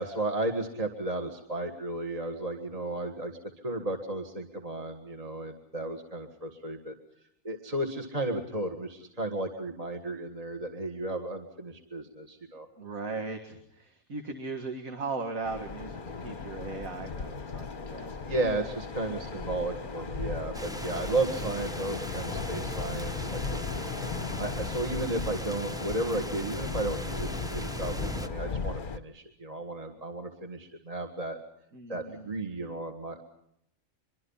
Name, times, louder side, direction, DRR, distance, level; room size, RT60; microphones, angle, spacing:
voice 1, 0.0-3.3 3.6-7.0 7.4-12.7 18.2-23.9 24.4-31.4 31.9-33.2, right 2 dB, 25° right, 4 dB, 1.9 m, -34 dB
voice 2, 12.8-18.4 19.2-19.7 31.7-32.3, right 3 dB, 75° right, 5 dB, 2.3 m, -38 dB
sound 1, 15.4-29.0, left 5 dB, 40° left, 1.1 m, -36 dB
sound 2, 20.5-28.3, right 1 dB, 5° right, 0.6 m, -39 dB
24.0 x 24.0 x 5.6 m, 0.75 s
omnidirectional pair, 1.5 m